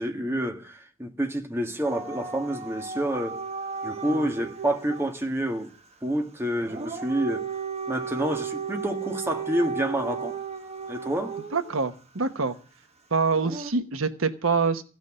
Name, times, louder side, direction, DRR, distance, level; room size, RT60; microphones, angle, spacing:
voice 1, 0.0-3.4 3.8-5.7 6.0-7.5 7.9-10.4 10.9-11.4, right 1 dB, 10° right, 1.6 m, -28 dB
Dog / Siren, 1.8-5.1 6.6-11.7 13.4-13.7, right 5 dB, 30° right, 1.3 m, -34 dB
voice 2, 11.5-12.5 13.1-14.8, right 4 dB, 85° right, 1.1 m, -25 dB
16.0 x 6.2 x 9.8 m
head